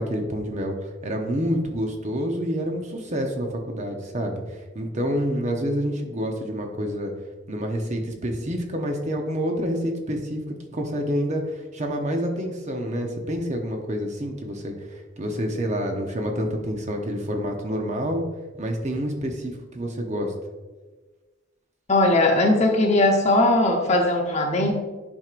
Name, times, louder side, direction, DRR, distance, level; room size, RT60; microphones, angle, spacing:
voice 1, 0.0-4.4 4.7-7.1 7.5-18.2 18.6-20.3, equal, 35° right, 3 dB, 0.8 m, -28 dB
voice 2, 21.9-24.7, left 2 dB, 35° left, 1 dB, 1.0 m, -19 dB
11.0 x 4.6 x 2.5 m, 1.3 s
head